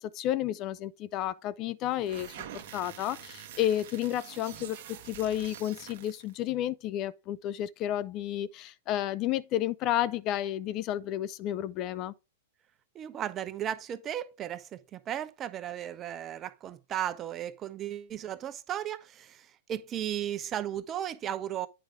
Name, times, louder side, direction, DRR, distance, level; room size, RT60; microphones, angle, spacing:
voice 1, 0.0-12.1, left 12 dB, 40° left, 0.4 m, -31 dB
sound 1, 1.9-6.3, right 10 dB, 60° right, 1.2 m, -46 dB
voice 2, 12.9-21.7, right 11 dB, 30° right, 0.7 m, -35 dB
8.9 x 4.9 x 3.5 m
hypercardioid pair, 110°, 0 cm